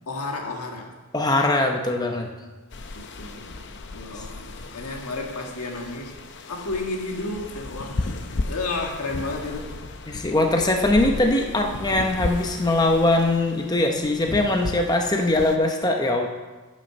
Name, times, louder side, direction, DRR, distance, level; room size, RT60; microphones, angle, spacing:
voice 1, 0.1-0.9 2.9-6.1 6.5-8.2 8.4-9.8, left 2 dB, 90° left, 1 dB, 1.7 m, -32 dB
voice 2, 1.1-2.3 10.1-16.3, left 2 dB, 15° left, 3 dB, 0.7 m, -21 dB
sound 1, 2.7-15.6, left 2 dB, 50° left, 0.6 m, -35 dB
9.5 x 6.4 x 6.8 m, 1.2 s
head